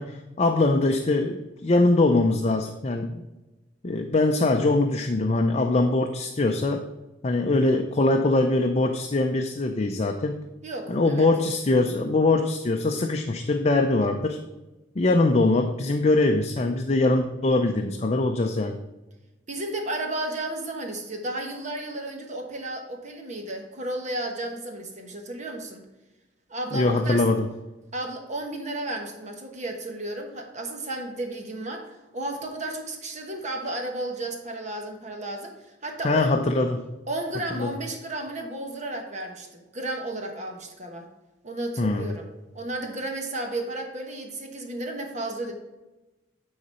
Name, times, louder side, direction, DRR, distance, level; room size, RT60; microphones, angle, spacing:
voice 1, 0.0-3.2 3.8-6.9 7.2-10.4 10.9-14.4 15.0-18.8 26.7-27.5 36.0-36.8 37.6-37.7 41.8-42.1, left 2 dB, 35° left, 5 dB, 0.5 m, -22 dB
voice 2, 10.6-11.3 19.5-25.8 26.5-27.2 27.9-36.3 37.1-41.1 41.4-42.3 42.5-45.5, right 1 dB, 40° right, 3 dB, 1.2 m, -33 dB
9.5 x 4.0 x 5.4 m, 1.1 s
head